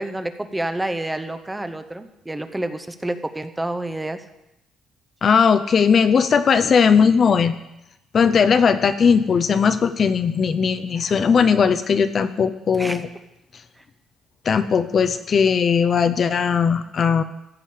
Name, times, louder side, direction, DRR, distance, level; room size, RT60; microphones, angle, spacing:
voice 1, 0.0-4.2 12.8-13.0, right 1 dB, 10° right, 9 dB, 0.7 m, -28 dB
voice 2, 5.2-7.5 8.1-13.1 14.4-17.2, left 6 dB, 40° left, 11 dB, 0.6 m, -18 dB
14.5 x 5.0 x 8.5 m, 0.89 s
cardioid pair, 140°, 0 cm